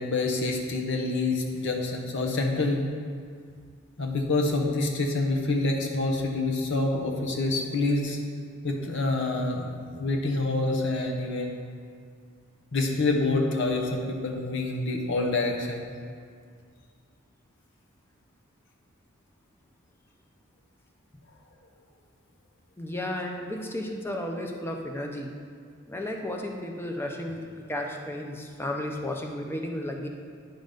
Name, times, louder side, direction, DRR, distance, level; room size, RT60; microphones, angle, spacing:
voice 1, 0.0-2.8 4.0-8.2 8.6-11.5 12.7-15.9, left 2 dB, 60° left, 1 dB, 1.1 m, -27 dB
voice 2, 22.8-25.3 25.9-30.1, left 1 dB, 10° left, 2 dB, 0.6 m, -33 dB
10.0 x 3.9 x 5.2 m, 2.1 s
head